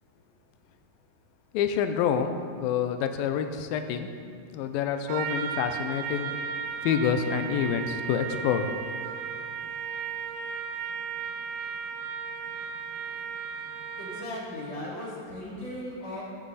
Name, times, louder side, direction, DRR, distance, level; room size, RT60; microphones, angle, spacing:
voice 1, 1.5-4.1 4.5-6.3 6.8-8.7, left 8 dB, 85° left, 7 dB, 2.1 m, -27 dB
Trumpet, 5.1-14.4, right 7 dB, 85° right, 2.9 m, -35 dB
voice 2, 14.0-16.2, left 1 dB, 40° left, -7 dB, 3.7 m, -37 dB
22.0 x 8.0 x 4.1 m, 2.3 s
omnidirectional pair, 4.9 m